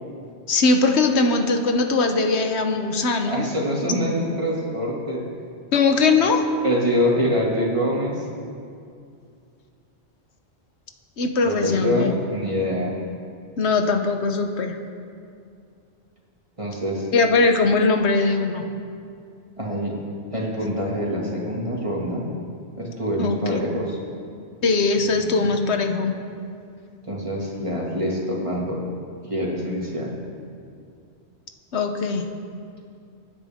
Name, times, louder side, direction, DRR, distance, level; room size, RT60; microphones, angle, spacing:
voice 1, 0.5-3.5 5.7-6.4 11.2-12.1 13.6-14.8 17.1-18.6 20.6-20.7 23.2-23.6 24.6-26.1 31.7-32.3, left 3 dB, 85° left, 5 dB, 1.3 m, -20 dB
voice 2, 3.3-5.2 6.1-6.2 6.6-8.3 11.4-12.9 16.6-17.1 19.6-20.0 20.3-22.3 22.8-24.0 25.1-25.4 27.1-28.8 29.3-30.1, equal, 30° right, -3 dB, 2.3 m, -25 dB
23.5 x 9.8 x 3.6 m, 2.4 s
omnidirectional pair, 1.1 m